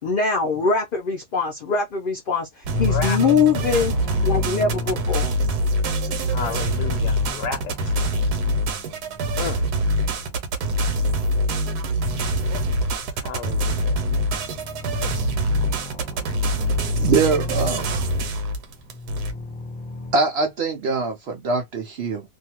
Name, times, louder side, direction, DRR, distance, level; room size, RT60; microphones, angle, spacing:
voice 1, 0.0-3.9 4.2-5.3, left 4 dB, 60° left, 0.5 m, -22 dB
sound 1, 2.7-20.1, left 2 dB, 10° left, 0.5 m, -36 dB
sound 2, 2.7-19.3, equal, 85° right, 1.2 m, -24 dB
voice 2, 2.9-3.4 6.2-7.7 9.4-9.6 13.2-14.0, left 7 dB, 85° left, 1.1 m, -32 dB
voice 3, 16.9-18.0 20.1-22.2, right 4 dB, 70° right, 0.6 m, -23 dB
2.6 x 2.3 x 2.8 m
omnidirectional pair, 1.7 m